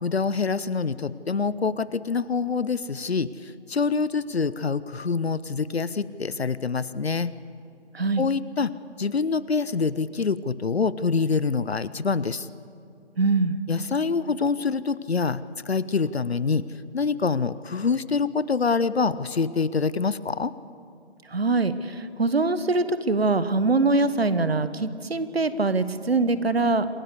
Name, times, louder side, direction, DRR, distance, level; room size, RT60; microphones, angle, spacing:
voice 1, 0.0-7.3 8.2-8.7 9.0-12.5 13.7-16.7 16.9-20.5, left 5 dB, 65° left, 17 dB, 0.7 m, -26 dB
voice 2, 13.2-13.6 21.3-26.9, right 3 dB, 65° right, 13 dB, 1.3 m, -23 dB
27.0 x 15.0 x 8.3 m, 2.4 s
figure-of-eight pair, 155°, 34 cm